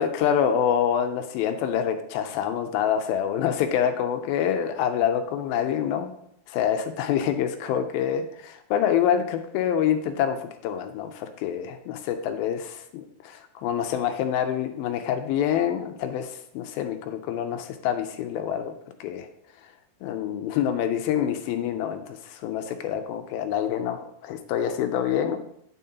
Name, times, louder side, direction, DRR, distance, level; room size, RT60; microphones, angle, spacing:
voice 1, 0.0-6.1 6.5-19.3 20.0-25.4, left 9 dB, 80° left, 7 dB, 2.3 m, -26 dB
9.2 x 7.3 x 2.8 m, 0.72 s
omnidirectional pair, 4.5 m